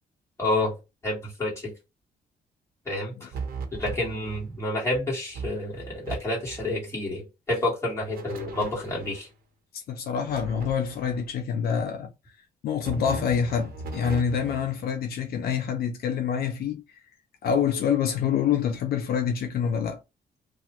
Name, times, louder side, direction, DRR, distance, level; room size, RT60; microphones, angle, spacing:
voice 1, 0.4-0.7 1.0-1.7 2.8-3.3 3.8-9.3, left 2 dB, 15° left, 1.7 m, -29 dB
sound 1, 3.3-4.5 4.9-5.0 5.3-6.2 6.4-6.8 8.1-9.3 10.3-11.3 12.8-14.8, right 3 dB, 65° right, 0.9 m, -37 dB
voice 2, 9.7-12.1 12.6-17.0 17.4-20.0, left 7 dB, 70° left, 0.5 m, -26 dB
2.9 x 2.1 x 2.9 m
cardioid pair, 140°, 16 cm